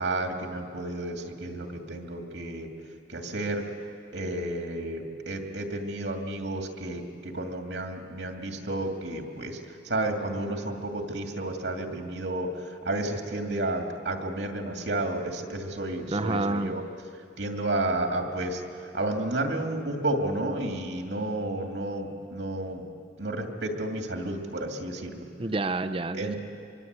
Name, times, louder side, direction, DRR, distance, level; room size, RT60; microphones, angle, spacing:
voice 1, 0.0-2.7 3.1-3.6 4.1-9.6 9.8-12.5 12.8-16.8 17.4-18.6 18.9-22.9 23.2-25.3 26.1-26.4, right 2 dB, 75° right, 3 dB, 2.3 m, -31 dB
voice 2, 16.1-16.7 25.4-26.4, right 2 dB, 30° right, 11 dB, 0.6 m, -28 dB
24.5 x 24.0 x 8.2 m, 2.6 s
head